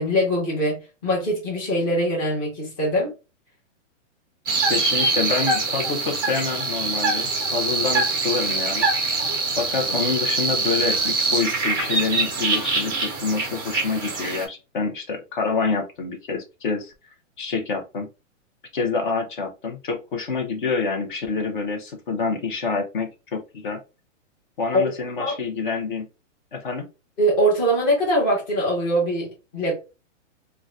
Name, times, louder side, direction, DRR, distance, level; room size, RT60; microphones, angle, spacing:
voice 1, 0.0-3.1 24.8-25.3 27.2-29.7, right 1 dB, 25° left, 1.0 m, -23 dB
sound 1, 4.5-14.4, right 3 dB, 20° right, 0.4 m, -24 dB
voice 2, 4.7-8.9 9.6-16.9 17.4-18.1 18.7-23.8 24.6-26.1 26.5-26.9, left 4 dB, 40° left, 0.7 m, -27 dB
3.8 x 2.2 x 2.4 m
hypercardioid pair, 175°, 38 cm